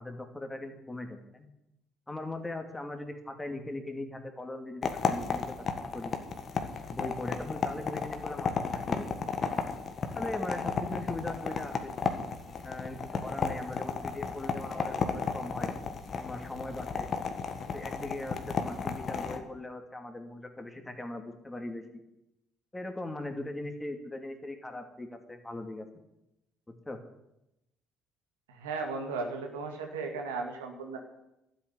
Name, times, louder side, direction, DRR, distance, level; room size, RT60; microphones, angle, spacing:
voice 1, 0.0-1.5 2.1-5.4 5.9-6.1 6.9-9.1 10.1-11.8 12.6-15.7 16.2-17.1 17.7-21.8 22.7-25.9 26.7-27.0, left 2 dB, 15° left, 5 dB, 2.6 m, -39 dB
sound 1, 4.8-19.4, left 5 dB, 45° left, 1.7 m, -33 dB
voice 2, 28.5-31.0, right 4 dB, 85° right, 3 dB, 2.0 m, -36 dB
12.0 x 7.9 x 9.8 m, 0.88 s
hypercardioid pair, 55°, 0 cm